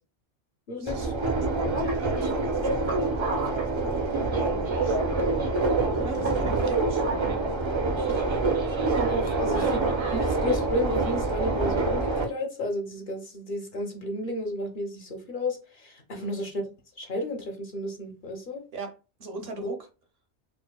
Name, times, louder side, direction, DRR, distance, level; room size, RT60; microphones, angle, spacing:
voice 1, 0.8-5.2 5.9-7.4 7.9-8.4 16.1-16.4 18.7-19.9, right 3 dB, 65° right, 0.8 m, -40 dB
Subway metro underground, 0.9-12.2, right 3 dB, 40° right, 0.4 m, -26 dB
voice 2, 6.1-6.5 8.5-8.6 9.0-9.8 10.1-16.6 17.0-18.6 19.6-19.7, left 1 dB, 55° left, 0.7 m, -32 dB
4.4 x 2.1 x 2.2 m
omnidirectional pair, 1.2 m